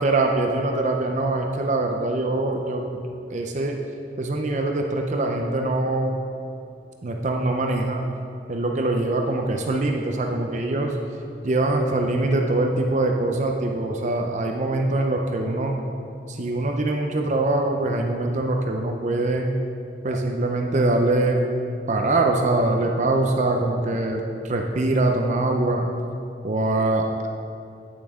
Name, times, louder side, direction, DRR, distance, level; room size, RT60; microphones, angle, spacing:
voice 1, 0.0-3.0 3.3-3.8 4.2-6.2 7.0-8.0 8.5-11.0 11.4-15.8 16.3-19.5 20.0-21.4 21.9-25.9 26.4-27.0, right 2 dB, 40° right, 3 dB, 0.5 m, -23 dB
9.0 x 8.5 x 3.6 m, 2.6 s
head